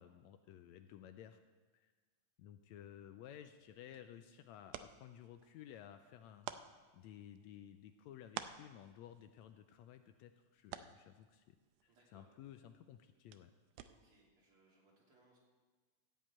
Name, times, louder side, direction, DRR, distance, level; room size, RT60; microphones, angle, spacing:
voice 1, 0.0-1.4 1.7-1.9 2.4-6.5 6.9-11.6 11.8-13.5, left 10 dB, 80° left, 9 dB, 1.7 m, -55 dB
sound 1, 3.6-14.3, right 10 dB, 80° right, 1.6 m, -54 dB
voice 2, 11.9-12.3 13.8-15.4, right 2 dB, 50° right, -4 dB, 3.6 m, -70 dB
15.0 x 5.4 x 8.6 m, 1.3 s
omnidirectional pair, 3.4 m